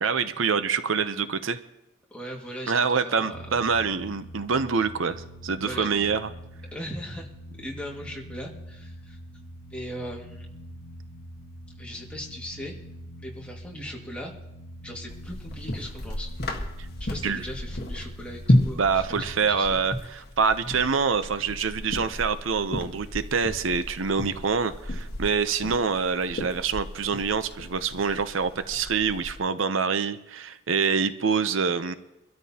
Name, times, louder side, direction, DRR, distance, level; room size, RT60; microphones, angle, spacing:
voice 1, 0.0-1.6 2.7-6.3 17.2-17.4 18.8-31.9, right 5 dB, 85° right, 11 dB, 0.7 m, -26 dB
voice 2, 2.1-3.4 5.6-6.0 6.7-7.3 7.6-9.2 9.7-10.5 11.8-12.8 13.2-14.3 14.8-16.3 17.0-19.7, equal, 5° left, -2 dB, 2.0 m, -38 dB
sound 1, 3.3-19.5, equal, 55° right, 3.4 m, -44 dB
sound 2, 15.1-29.4, left 1 dB, 50° left, 1.5 m, -32 dB
24.5 x 13.0 x 2.9 m, 0.90 s
head